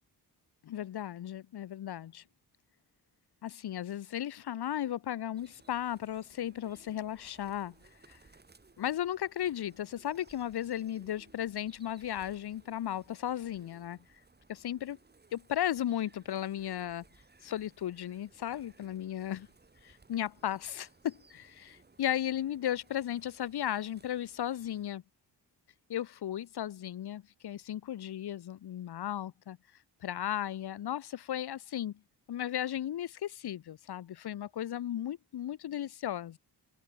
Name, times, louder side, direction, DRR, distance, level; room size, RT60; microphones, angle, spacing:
voice 1, 0.6-2.2 3.4-7.7 8.1-8.2 8.8-14.0 14.5-15.0 15.3-17.0 17.4-19.5 19.8-25.0 25.9-29.6 30.0-32.0 32.3-36.4, left 11 dB, 70° left, 1.1 m, -35 dB
sound 1, 5.4-24.9, right 3 dB, 25° right, 4.9 m, -62 dB
wide cardioid pair, 155°, 40 cm